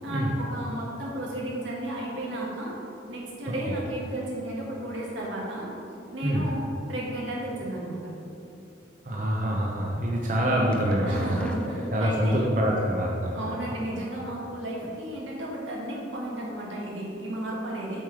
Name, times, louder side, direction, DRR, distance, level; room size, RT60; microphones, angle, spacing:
voice 1, 0.0-2.8 3.1-5.7 6.1-6.6 6.9-8.0 11.0-12.5 13.3-18.0, right 1 dB, 85° right, -4 dB, 1.7 m, -33 dB
voice 2, 9.0-11.5 11.9-13.5, equal, 45° right, -2 dB, 0.7 m, -25 dB
sound 1, 10.7-12.5 13.5-14.4 14.8-15.2 15.5-15.6 15.9-16.0, equal, 5° left, 0.5 m, -42 dB
7.3 x 4.9 x 4.7 m, 2.8 s
head